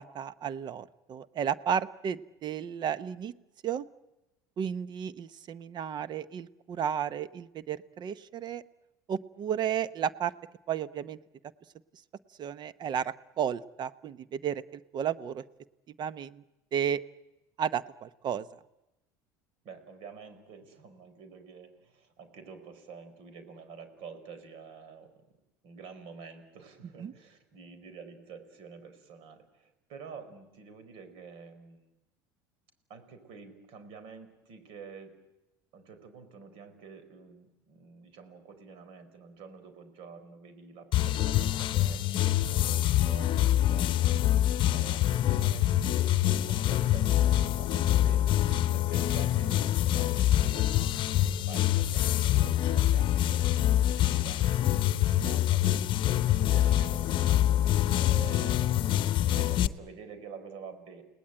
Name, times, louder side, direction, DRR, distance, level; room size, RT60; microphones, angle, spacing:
voice 1, 0.0-3.3 3.6-3.8 4.6-8.6 9.1-10.3 10.7-11.2 12.4-15.4 16.0-16.4 16.7-17.0 17.6-18.5 27.0-27.1, right 8 dB, 45° right, 16 dB, 0.9 m, -33 dB
voice 2, 19.6-25.2 25.6-31.9 32.9-35.1 35.7-50.9 51.4-61.0, right 5 dB, 65° right, 10 dB, 4.7 m, -48 dB
sound 1, 40.9-59.7, left 13 dB, 50° left, 0.8 m, -25 dB
29.5 x 18.5 x 8.9 m, 0.98 s
hypercardioid pair, 85°, 11 cm